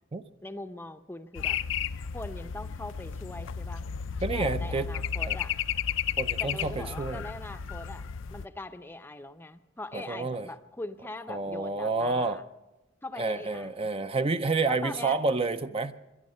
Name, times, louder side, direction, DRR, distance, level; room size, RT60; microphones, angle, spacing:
voice 1, 0.4-1.6 2.1-3.8 4.3-5.5 6.4-12.4 13.0-13.9 14.7-15.2, left 2 dB, 10° left, 9 dB, 0.6 m, -41 dB
sound 1, 1.3-8.5, left 8 dB, 75° left, 0.5 m, -33 dB
voice 2, 4.2-4.9 5.3-5.4 6.2-7.3 9.9-10.5 11.3-12.4 13.2-15.9, right 3 dB, 30° right, 10 dB, 0.5 m, -29 dB
23.0 x 11.0 x 5.4 m, 1.0 s
head